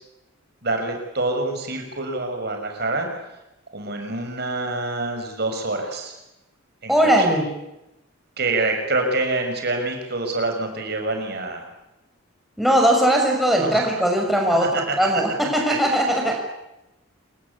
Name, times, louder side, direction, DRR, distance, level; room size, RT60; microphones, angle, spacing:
voice 1, 0.6-3.1 3.7-6.1 6.8-7.3 8.4-11.7 13.6-13.9 14.7-14.9, right 2 dB, 50° right, 4 dB, 6.1 m, -26 dB
voice 2, 6.9-7.5 12.6-16.3, right 1 dB, ahead, 0 dB, 6.5 m, -19 dB
28.0 x 24.0 x 8.6 m, 0.93 s
head